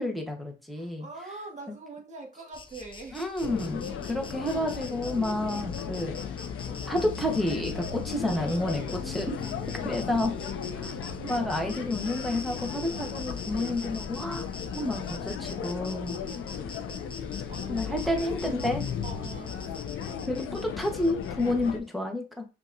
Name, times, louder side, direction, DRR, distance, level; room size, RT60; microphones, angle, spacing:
voice 1, 0.0-1.1 3.1-6.2 6.7-9.5 9.8-10.3 10.7-16.2 17.7-18.9 20.3-22.5, left 1 dB, ahead, 1.1 m, -30 dB
voice 2, 0.7-3.2 8.2-10.0 16.7-17.0 17.5-18.1 19.0-19.9 21.4-21.5, right 3 dB, 35° right, 1.4 m, -44 dB
Insect, 2.5-21.7, left 3 dB, 25° left, 0.6 m, -46 dB
sound 1, 3.4-21.8, left 7 dB, 90° left, 0.5 m, -36 dB
5.4 x 2.4 x 2.6 m
cardioid pair, 75°, 20 cm